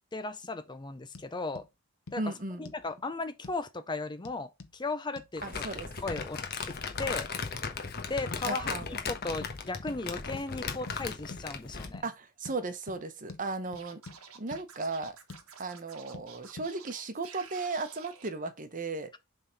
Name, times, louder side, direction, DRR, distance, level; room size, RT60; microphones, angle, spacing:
voice 1, 0.1-1.6 2.1-2.3 2.6-5.7 6.0-6.4 6.7-6.8 7.0-7.3 8.1-12.0, left 3 dB, 20° left, 0.5 m, -36 dB
sound 1, 1.1-1.3 1.6-1.7 2.1-2.2 2.7-2.9 3.4-3.6 4.3-4.8 5.2-5.3 6.2-6.3 6.7-6.8 7.3-7.5 7.8-8.0 8.3-8.5 8.8-9.0 9.4-9.5 9.9-10.0 10.3-10.5 10.9-11.0 11.3-11.5 11.9-12.1 12.5-12.6 12.9-13.0 13.3-13.4 13.7-14.2 14.5-14.6 15.0-15.5 16.1-16.3 16.6-16.7, left 3 dB, 70° left, 1.1 m, -46 dB
voice 2, 2.2-2.7 5.4-5.9 8.5-8.9 12.0-14.0 14.3-15.2 15.6-19.1, right 3 dB, 40° right, 1.1 m, -36 dB
Crumpling crinkling, 5.4-12.0, left 5 dB, 45° left, 1.2 m, -37 dB
Scratching (performance technique), 13.7-18.3, right 6 dB, 85° right, 1.5 m, -51 dB
7.0 x 3.8 x 5.2 m
head